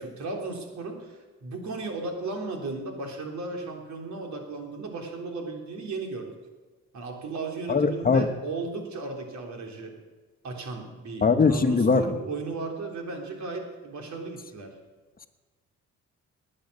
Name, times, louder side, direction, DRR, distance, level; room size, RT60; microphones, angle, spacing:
voice 1, 0.0-6.3 6.9-9.9 10.4-14.8, right 3 dB, 70° right, 2 dB, 3.4 m, -35 dB
voice 2, 7.7-8.3 11.2-12.0, left 4 dB, 30° left, 7 dB, 1.2 m, -21 dB
20.0 x 8.7 x 6.7 m, 1.3 s
cardioid pair, 90°, 30 cm